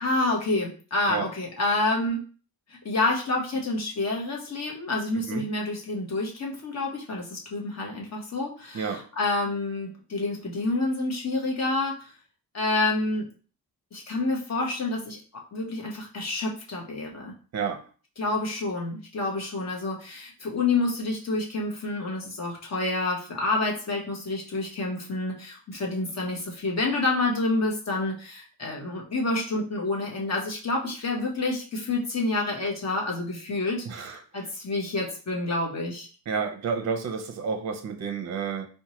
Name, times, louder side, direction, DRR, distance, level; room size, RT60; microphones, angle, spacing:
voice 1, 0.0-2.2 2.7-12.1 12.5-13.3 13.9-15.2 15.5-17.3 18.2-36.1, left 2 dB, 45° left, -1 dB, 0.9 m, -28 dB
voice 2, 33.9-34.2 36.3-38.7, right 6 dB, 45° right, 6 dB, 0.5 m, -30 dB
4.4 x 2.2 x 2.9 m, 0.39 s
wide cardioid pair, 145°, 38 cm